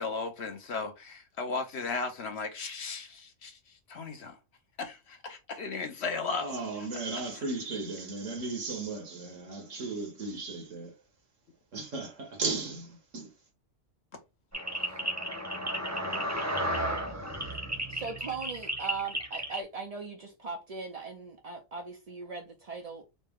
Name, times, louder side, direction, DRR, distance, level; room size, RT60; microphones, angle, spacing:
voice 1, 0.0-3.6 3.9-4.4 4.8-6.5, left 4 dB, 60° left, 1.0 m, -35 dB
voice 2, 6.4-10.9 11.7-13.3, right 3 dB, 70° right, 1.6 m, -36 dB
sound 1, 14.5-19.6, equal, 15° right, 0.8 m, -33 dB
voice 3, 17.9-23.0, right 4 dB, 50° right, 0.4 m, -39 dB
4.1 x 2.1 x 3.5 m
omnidirectional pair, 1.4 m